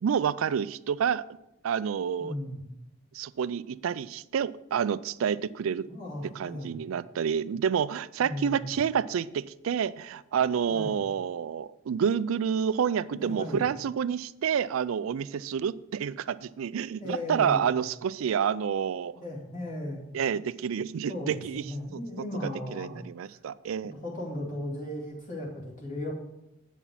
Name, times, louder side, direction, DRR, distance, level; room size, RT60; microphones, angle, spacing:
voice 1, 0.0-1.2 1.6-2.3 3.1-5.8 6.4-19.2 20.1-21.6 21.9-22.0 22.4-23.9, right 7 dB, 75° right, 17 dB, 0.4 m, -29 dB
voice 2, 2.2-2.6 5.9-6.9 8.2-8.7 10.7-11.0 13.1-13.6 17.0-17.7 19.1-20.1 21.1-23.4 23.9-26.1, left 1 dB, 40° left, -5 dB, 2.3 m, -36 dB
8.1 x 5.7 x 6.1 m, 0.88 s
head